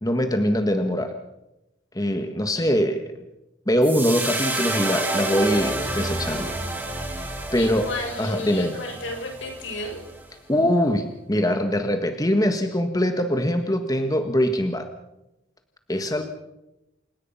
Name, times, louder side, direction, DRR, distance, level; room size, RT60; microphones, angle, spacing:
voice 1, 0.0-1.1 1.9-3.0 3.7-6.5 7.5-7.9 8.2-8.8 10.5-14.9 15.9-16.2, equal, 20° left, 6 dB, 1.6 m, -22 dB
sound 1, 3.8-10.2, right 2 dB, 10° right, 4.2 m, -29 dB
voice 2, 7.5-10.0, left 2 dB, 75° left, 3 dB, 7.5 m, -33 dB
28.5 x 18.0 x 5.7 m, 0.91 s
head